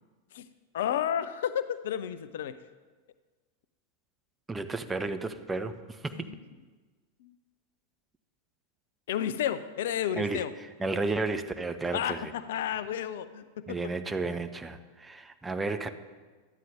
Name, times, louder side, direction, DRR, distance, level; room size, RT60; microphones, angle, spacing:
voice 1, 0.7-2.6 6.1-6.4 7.2-7.3 9.1-10.5 11.9-13.8, left 9 dB, 55° left, 13 dB, 0.4 m, -32 dB
voice 2, 4.5-5.7 6.0-6.1 10.2-10.4 10.8-12.3 13.7-15.9, right 3 dB, 10° right, 9 dB, 0.6 m, -32 dB
13.0 x 9.1 x 3.6 m, 1.4 s
figure-of-eight pair, 90°, 0 cm